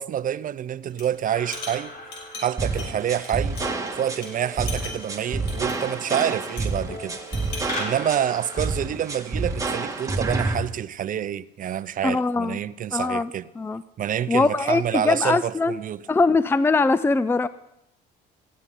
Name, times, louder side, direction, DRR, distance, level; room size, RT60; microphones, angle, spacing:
voice 1, 0.0-1.9 2.4-3.6 3.9-7.2 7.8-13.4 14.0-16.0, right 10 dB, 45° right, 0.6 m, -27 dB
sound 1, 0.9-1.1 1.4-3.9 4.2-4.3 4.7-6.8 7.2-7.7, left 3 dB, 70° left, 6.0 m, -39 dB
sound 2, 1.2-8.7, left 1 dB, 50° left, 5.9 m, -40 dB
sound 3, 2.6-10.6, right 3 dB, 15° right, 2.2 m, -28 dB
voice 2, 12.0-12.6 12.9-13.8 14.3-15.8 16.1-17.5, left 3 dB, 10° left, 0.5 m, -22 dB
18.0 x 15.0 x 3.9 m
supercardioid pair, 90°, 20 cm